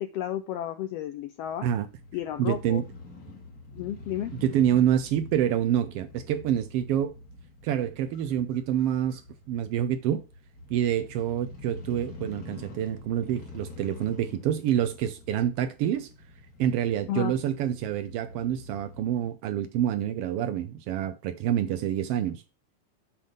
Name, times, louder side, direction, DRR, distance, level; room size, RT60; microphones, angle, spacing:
voice 1, 0.0-1.7 2.1-2.8 3.7-4.3 17.1-17.3, left 11 dB, 80° left, 1.4 m, -32 dB
Crow / Motorcycle, 1.4-19.3, left 2 dB, 35° left, 1.7 m, -46 dB
voice 2, 2.4-2.8 4.4-7.1 7.6-9.2 9.5-10.2 10.7-16.1 16.6-22.4, right 10 dB, 85° right, 1.3 m, -27 dB
7.9 x 3.6 x 6.4 m
omnidirectional pair, 3.3 m